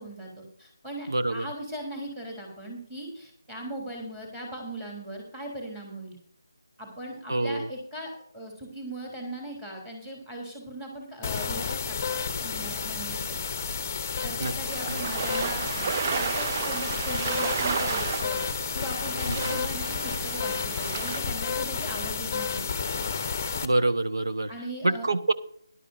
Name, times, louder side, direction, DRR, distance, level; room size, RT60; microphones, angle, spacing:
voice 1, 0.0-6.2 6.8-13.4 14.2-22.7 24.5-25.1, right 1 dB, 10° right, -1 dB, 3.4 m, -39 dB
voice 2, 1.1-1.5 7.3-7.7 14.4-14.5 14.9-15.0 19.3-19.6 23.6-24.5 24.8-25.3, right 2 dB, 65° right, 9 dB, 1.0 m, -26 dB
sound 1, 11.2-23.7, left 6 dB, 25° left, 0.8 m, -31 dB
sound 2, 14.6-21.2, right 5 dB, 30° right, 0.5 m, -32 dB
17.0 x 11.5 x 2.7 m, 0.63 s
figure-of-eight pair, 155°, 2 cm